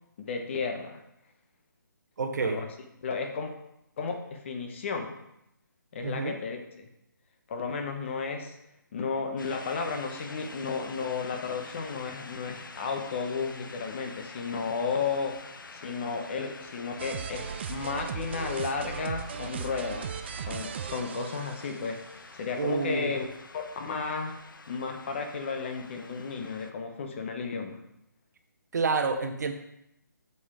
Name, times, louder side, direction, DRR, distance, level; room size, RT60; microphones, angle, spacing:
voice 1, 0.2-1.0 2.4-2.7 3.0-3.5 4.0-5.2 5.9-6.9 7.5-8.6 8.9-15.4 15.7-20.2 20.5-22.0 22.3-23.2 23.5-24.3 24.7-27.8, left 5 dB, 35° left, 4 dB, 1.1 m, -33 dB
voice 2, 2.2-2.6 6.0-6.3 22.6-23.1 28.7-29.5, right 4 dB, 55° right, 6 dB, 1.1 m, -28 dB
sound 1, 9.4-26.7, left 3 dB, 75° left, 0.9 m, -47 dB
sound 2, 17.0-22.1, right 7 dB, 30° right, 0.4 m, -37 dB
8.2 x 6.9 x 3.7 m, 0.81 s
hypercardioid pair, 160°, 11 cm